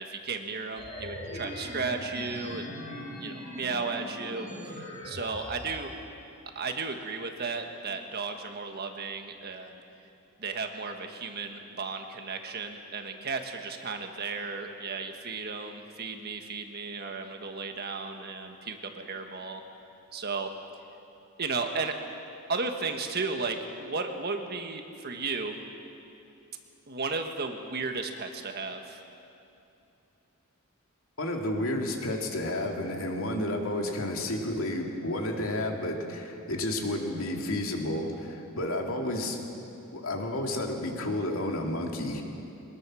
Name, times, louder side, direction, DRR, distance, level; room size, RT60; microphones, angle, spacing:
voice 1, 0.0-2.6 3.2-5.9 6.5-9.8 10.4-19.6 20.1-20.5 21.4-21.9 22.5-25.6 26.9-29.0, right 4 dB, 45° right, 5 dB, 1.5 m, -34 dB
sound 1, 0.8-5.8, left 1 dB, 50° left, 6.3 m, -40 dB
voice 2, 31.2-39.4 39.9-42.2, left 1 dB, 70° left, 1 dB, 2.6 m, -31 dB
23.0 x 20.0 x 6.3 m, 2.7 s
head